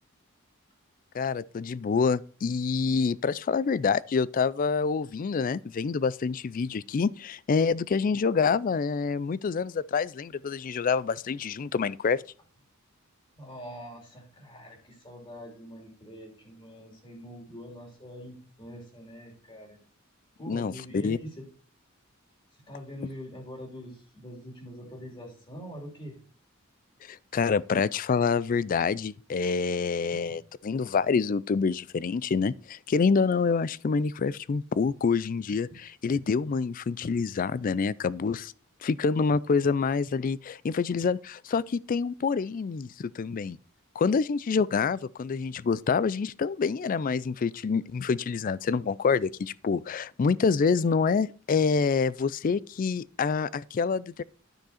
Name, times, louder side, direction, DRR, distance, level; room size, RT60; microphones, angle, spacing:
voice 1, 1.1-12.2 20.5-21.2 27.1-38.5 38.8-43.6 44.0-54.2, left 5 dB, 40° left, 0.3 m, -27 dB
voice 2, 13.3-19.8 20.4-21.5 22.5-26.2 30.1-30.2, equal, 25° left, 2.9 m, -44 dB
10.0 x 6.3 x 4.2 m
head